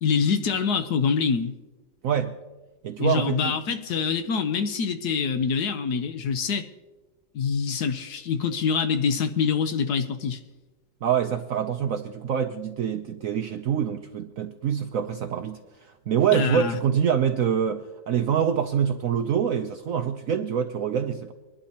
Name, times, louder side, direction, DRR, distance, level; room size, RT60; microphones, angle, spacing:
voice 1, 0.0-1.6 3.0-6.7 7.3-10.4 16.3-16.8, left 6 dB, 65° left, 1.3 m, -25 dB
voice 2, 2.0-2.4 2.8-3.5 11.0-21.3, right 8 dB, 70° right, 0.8 m, -25 dB
24.0 x 11.5 x 2.9 m
omnidirectional pair, 2.0 m